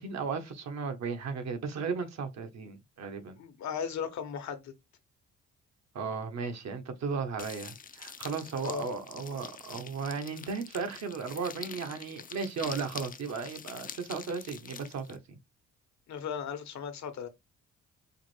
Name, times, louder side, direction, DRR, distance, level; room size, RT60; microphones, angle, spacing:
voice 1, 0.0-3.4 5.9-15.4, right 5 dB, 60° right, 1.1 m, -35 dB
voice 2, 3.4-4.7 8.6-8.8 16.1-17.3, left 7 dB, 65° left, 1.0 m, -36 dB
sound 1, 7.4-15.2, left 7 dB, 30° left, 0.5 m, -46 dB
4.8 x 2.1 x 3.1 m
cardioid pair, 90°, 30 cm